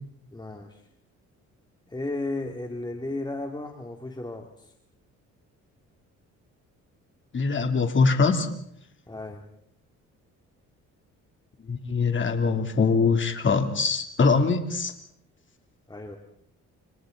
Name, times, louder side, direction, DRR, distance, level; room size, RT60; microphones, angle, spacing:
voice 1, 0.3-0.8 1.9-4.7 9.1-9.4 15.9-16.2, left 2 dB, 15° left, 3 dB, 2.4 m, -34 dB
voice 2, 7.3-8.5 11.7-14.9, left 4 dB, 40° left, 5 dB, 3.0 m, -23 dB
29.5 x 27.0 x 3.9 m, 0.71 s
cardioid pair, 90°, 30 cm